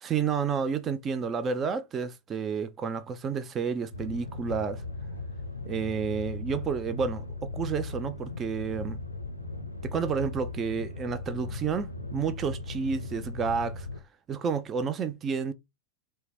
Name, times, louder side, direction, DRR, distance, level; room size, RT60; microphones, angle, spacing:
voice 1, 0.0-4.8 5.7-7.3 7.5-9.0 9.8-13.9 14.3-15.5, right 6 dB, 25° right, 0.4 m, -30 dB
sound 1, 3.9-14.0, left 3 dB, 90° left, 0.5 m, -37 dB
3.2 x 2.1 x 3.2 m
figure-of-eight pair, 90°, 0 cm